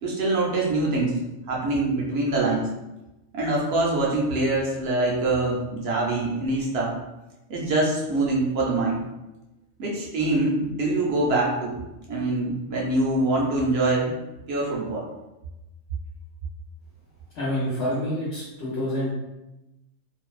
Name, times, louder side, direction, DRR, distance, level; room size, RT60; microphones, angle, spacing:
voice 1, 0.0-1.1 1.5-2.7 3.3-6.9 7.5-9.1 9.8-11.8 12.1-14.1 14.5-15.1, right 2 dB, 65° right, -3 dB, 0.7 m, -24 dB
voice 2, 17.3-19.1, left 1 dB, 65° left, -8 dB, 1.0 m, -27 dB
2.5 x 2.1 x 2.3 m, 0.99 s
omnidirectional pair, 1.3 m